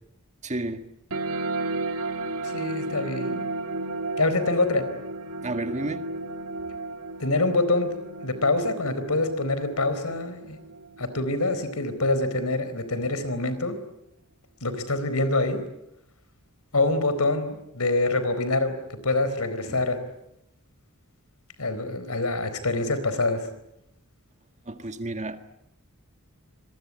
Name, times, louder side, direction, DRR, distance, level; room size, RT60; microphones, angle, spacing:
voice 1, 0.4-1.0 5.4-6.1 19.7-19.9 24.7-25.5, right 2 dB, 35° right, 8 dB, 1.7 m, -32 dB
sound 1, 1.1-12.1, right 2 dB, 75° right, 2.3 m, -34 dB
voice 2, 2.4-3.5 4.2-4.9 7.2-10.6 11.0-13.8 14.6-15.6 16.7-20.0 21.6-23.5, left 2 dB, 80° left, 12 dB, 4.2 m, -25 dB
26.5 x 22.5 x 9.5 m, 0.84 s
head